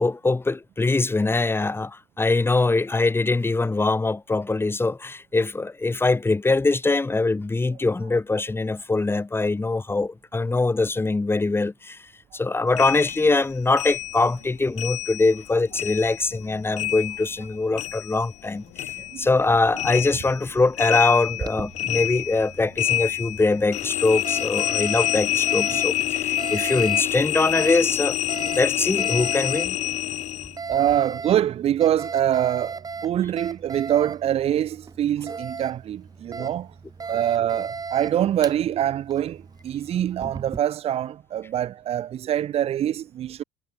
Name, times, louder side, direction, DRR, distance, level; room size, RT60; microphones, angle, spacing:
voice 1, 0.0-12.0 12.3-18.9 19.2-28.2 28.4-29.8 36.4-36.5, left 3 dB, 15° left, 2.3 m, -23 dB
sound 1, 12.8-15.5 15.7-18.5 18.8-30.6, left 14 dB, 55° left, 4.2 m, -27 dB
Alarm, 21.2-40.6, right 5 dB, 30° right, 4.7 m, -38 dB
voice 2, 30.7-36.7 37.1-43.4, right 11 dB, 45° right, 1.2 m, -24 dB
figure-of-eight pair, 55°, 14 cm